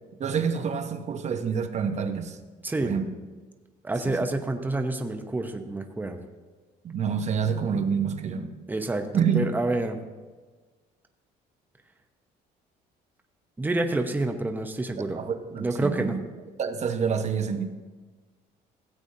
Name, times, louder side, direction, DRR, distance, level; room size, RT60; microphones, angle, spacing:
voice 1, 0.2-2.4 2.8-3.0 4.0-4.2 6.8-8.6 9.1-9.5 15.2-16.3 16.6-17.6, right 6 dB, 40° right, 7 dB, 0.9 m, -27 dB
voice 2, 3.8-6.2 8.7-9.1 9.3-10.0 13.6-15.2 15.6-16.2, right 2 dB, 10° right, 5 dB, 0.8 m, -28 dB
16.0 x 8.1 x 2.8 m, 1.3 s
cardioid pair, 110°, 17 cm